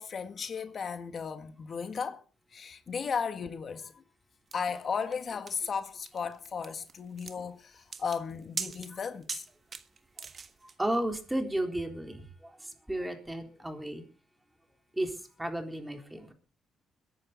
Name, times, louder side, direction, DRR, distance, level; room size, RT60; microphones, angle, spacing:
voice 1, 0.0-2.2 2.5-4.0 4.5-9.4, left 6 dB, 50° left, 1.6 m, -35 dB
sound 1, 4.5-10.8, right 5 dB, 40° right, 1.5 m, -42 dB
voice 2, 10.8-14.0 14.9-16.3, right 1 dB, 10° right, 3.7 m, -34 dB
22.0 x 10.5 x 4.0 m
cardioid pair, 90°, 0 cm